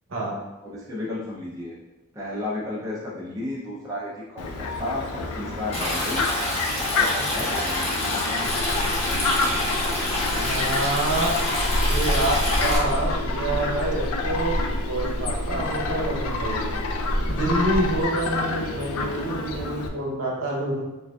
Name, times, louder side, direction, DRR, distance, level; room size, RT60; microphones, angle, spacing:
voice 1, 0.6-1.7 2.1-6.3 6.7-8.1 10.0-10.5, left 2 dB, 15° right, -6 dB, 0.4 m, -33 dB
Fowl, 4.4-19.9, left 3 dB, 85° left, 0.4 m, -29 dB
Stream, 5.7-12.8, left 1 dB, 30° left, 0.8 m, -27 dB
sound 1, 8.5-18.0, equal, 40° right, 1.5 m, -29 dB
voice 2, 10.3-11.3 11.8-14.6 14.9-16.7 17.3-20.8, right 2 dB, 70° right, -3 dB, 0.8 m, -27 dB
4.6 x 2.5 x 2.3 m, 1.1 s
head